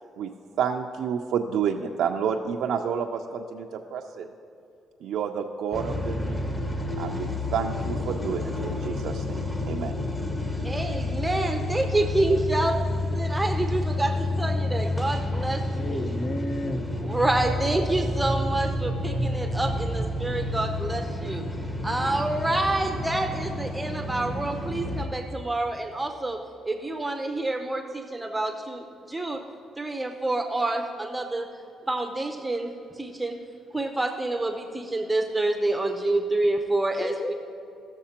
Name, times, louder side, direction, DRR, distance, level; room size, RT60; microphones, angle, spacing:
voice 1, 0.6-4.3 5.0-6.5 7.0-10.0, right 7 dB, 80° right, 2 dB, 0.4 m, -29 dB
sound 1, 5.7-25.1, left 1 dB, 15° left, 1.2 m, -29 dB
voice 2, 10.6-12.8 13.1-15.6 15.9-16.1 17.0-21.4 21.8-29.4 29.8-31.5 31.9-32.7 33.0-33.4 33.7-37.1, right 2 dB, 10° right, 4 dB, 0.6 m, -27 dB
voice 3, 15.7-16.9 37.0-37.4, left 2 dB, 40° left, 9 dB, 0.6 m, -32 dB
16.0 x 6.5 x 2.9 m, 2.7 s
cardioid pair, 90°, 0 cm